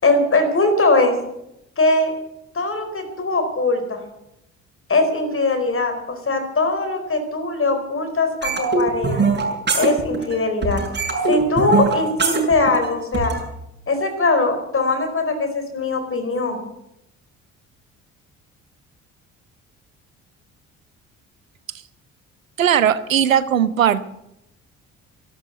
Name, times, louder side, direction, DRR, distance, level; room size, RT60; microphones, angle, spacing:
voice 1, 0.0-1.1 1.8-2.1 2.5-4.0 4.9-9.2 9.7-10.8 11.3-13.3 13.9-16.6, left 2 dB, 35° left, 8 dB, 4.4 m, -20 dB
sound 1, 8.4-10.4 10.6-13.4, right 4 dB, 25° right, 6.6 m, -22 dB
voice 2, 22.6-24.0, right 9 dB, 90° right, 16 dB, 0.7 m, -18 dB
14.0 x 12.5 x 7.8 m, 0.84 s
figure-of-eight pair, 50°, 39 cm